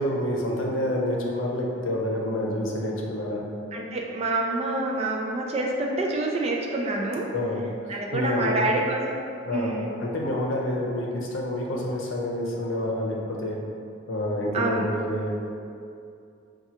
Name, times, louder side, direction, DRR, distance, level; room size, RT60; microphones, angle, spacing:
voice 1, 0.0-3.4 7.3-8.7 9.5-9.7 10.0-13.6 14.1-15.4, left 1 dB, 80° left, -2 dB, 0.7 m, -28 dB
voice 2, 3.7-7.3 7.9-9.2 9.5-10.0 14.5-14.9, right 2 dB, 30° right, -1 dB, 0.4 m, -27 dB
5.9 x 2.3 x 2.8 m, 2.5 s
head